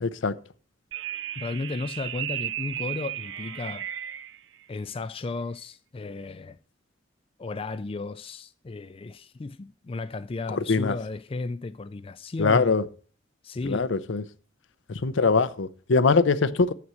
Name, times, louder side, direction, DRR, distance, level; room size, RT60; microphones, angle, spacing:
voice 1, 0.0-0.4 10.5-11.0 12.4-12.9 13.6-14.2 15.0-16.7, left 4 dB, 80° left, 0.6 m, -22 dB
sound 1, 0.9-4.4, right 11 dB, 70° right, 0.4 m, -34 dB
voice 2, 1.4-3.9 4.7-6.6 7.4-12.7 13.4-13.9, left 3 dB, 30° left, 0.4 m, -34 dB
7.7 x 5.9 x 7.6 m
head